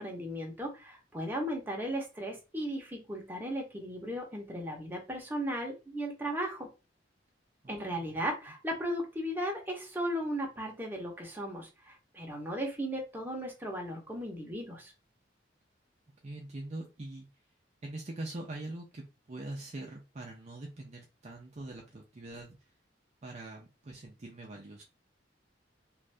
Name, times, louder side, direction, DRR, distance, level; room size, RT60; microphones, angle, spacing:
voice 1, 0.0-6.7 7.7-14.9, equal, 10° right, 0 dB, 0.9 m, -36 dB
voice 2, 16.2-17.3 17.8-19.0 19.3-22.6 23.2-24.8, right 2 dB, 40° right, 0 dB, 0.5 m, -43 dB
2.6 x 2.5 x 3.3 m, 0.28 s
head